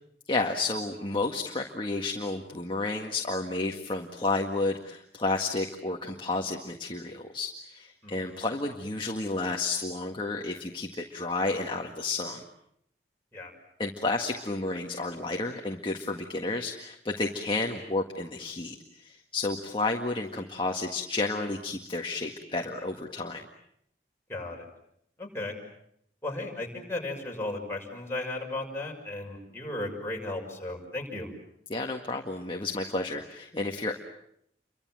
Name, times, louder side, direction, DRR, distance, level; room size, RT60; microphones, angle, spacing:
voice 1, 0.3-12.4 13.8-23.4 31.7-33.9, left 3 dB, 30° left, 2 dB, 1.8 m, -31 dB
voice 2, 8.0-8.4 13.3-13.5 24.3-24.7 25.2-25.5 26.2-31.3, left 2 dB, 15° left, -1 dB, 6.5 m, -35 dB
30.0 x 24.5 x 7.7 m, 0.73 s
head